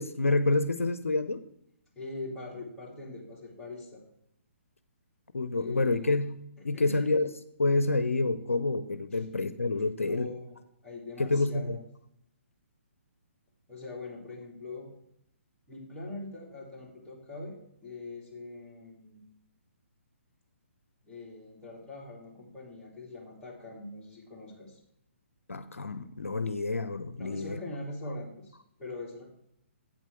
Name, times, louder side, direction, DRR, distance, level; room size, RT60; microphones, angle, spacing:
voice 1, 0.0-1.4 5.3-6.3 6.6-7.3 7.6-10.3 11.2-11.8 25.5-27.6, left 3 dB, 80° left, 11 dB, 0.6 m, -28 dB
voice 2, 1.9-4.0 5.5-6.1 6.6-7.0 10.0-11.8 13.7-14.9 15.7-19.2 21.0-24.8 27.2-29.3, left 2 dB, 10° left, -6 dB, 2.8 m, -42 dB
8.2 x 7.5 x 4.5 m, 0.75 s
figure-of-eight pair, 135°, 7 cm